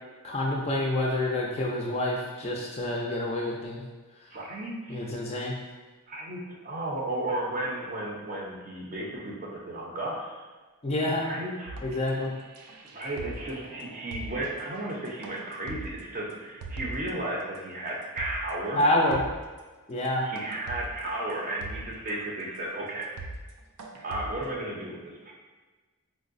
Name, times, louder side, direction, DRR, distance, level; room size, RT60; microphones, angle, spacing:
voice 1, 0.2-3.8 4.9-5.5 10.8-11.2 11.8-12.3 18.7-19.2 19.9-20.3, left 1 dB, 30° left, -2 dB, 0.4 m, -27 dB
voice 2, 4.3-5.1 6.1-10.4 11.2-11.8 12.9-18.8 20.2-23.1 24.0-25.3, right 1 dB, 35° right, -3 dB, 0.5 m, -34 dB
sound 1, 11.7-17.2 17.5-17.6 18.0-18.5 18.8-18.9 19.1-19.6 20.1-20.2 20.4-22.2 22.7-22.8 23.0-23.5 23.8-24.5, right 2 dB, 85° right, 0.4 m, -42 dB
4.5 x 2.0 x 2.5 m, 1.3 s
head